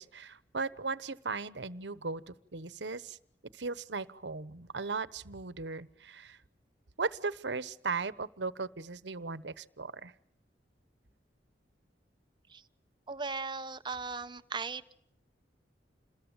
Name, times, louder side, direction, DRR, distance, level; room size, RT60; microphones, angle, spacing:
voice 1, 0.0-3.2 3.5-6.4 7.0-10.1, right 4 dB, 85° right, 16 dB, 1.1 m, -37 dB
voice 2, 13.1-14.8, right 4 dB, 25° right, 10 dB, 1.0 m, -37 dB
28.0 x 21.0 x 8.9 m, 0.70 s
head